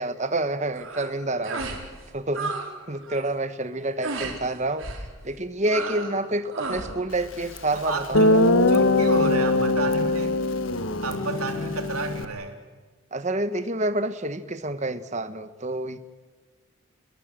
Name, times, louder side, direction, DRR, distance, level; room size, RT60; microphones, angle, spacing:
voice 1, 0.0-1.6 2.1-2.5 2.9-4.9 5.2-8.4 10.9-11.0 13.1-16.0, right 2 dB, 30° right, 11 dB, 1.3 m, -28 dB
sound 1, 0.7-1.1 1.4-1.8 2.1-2.7 3.0-3.3 4.0-4.4 4.8-5.1 5.7-6.2 6.5-6.9, right 3 dB, 65° right, 5.1 m, -32 dB
Guitar, 7.6-7.7 8.1-12.3, left 2 dB, 65° left, 1.4 m, -21 dB
voice 2, 7.7-10.4 11.0-12.6, right 3 dB, 85° right, 4 dB, 3.8 m, -31 dB
29.5 x 21.5 x 7.6 m, 1.4 s
head